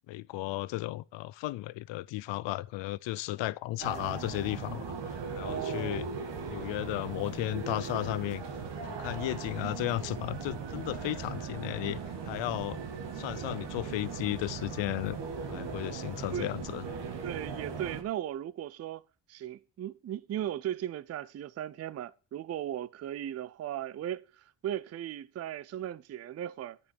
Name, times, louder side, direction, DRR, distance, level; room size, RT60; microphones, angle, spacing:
voice 1, 0.1-6.1 6.5-8.4 8.9-12.8 13.2-15.2 15.5-16.8, left 17 dB, 85° left, 0.6 m, -34 dB
sound 1, 3.8-18.0, right 5 dB, 75° right, 1.8 m, -39 dB
voice 2, 5.4-6.1 12.5-12.7 15.8-16.5 17.2-19.0 19.3-26.8, right 11 dB, 35° right, 0.4 m, -37 dB
10.0 x 5.4 x 6.1 m
cardioid pair, 100°, 43 cm